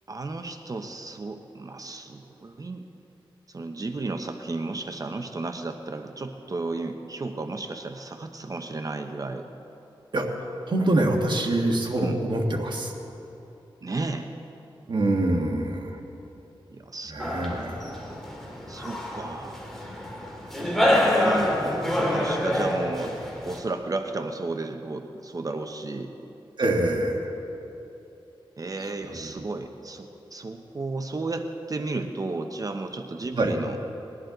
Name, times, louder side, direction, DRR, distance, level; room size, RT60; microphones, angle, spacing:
voice 1, 0.1-2.8 3.5-9.5 12.0-12.2 13.8-14.3 16.7-17.1 18.7-19.6 20.8-23.2 23.5-26.1 28.6-33.8, right 3 dB, 40° right, 6 dB, 0.7 m, -33 dB
voice 2, 10.1-12.9 14.9-15.9 17.1-17.8 26.6-27.3 29.1-29.5 33.4-33.5, right 1 dB, 55° right, 1 dB, 1.7 m, -25 dB
sound 1, 17.2-23.6, left 1 dB, 5° left, 2.6 m, -26 dB
20.0 x 11.5 x 3.9 m, 2.9 s
wide cardioid pair, 80°, 9 cm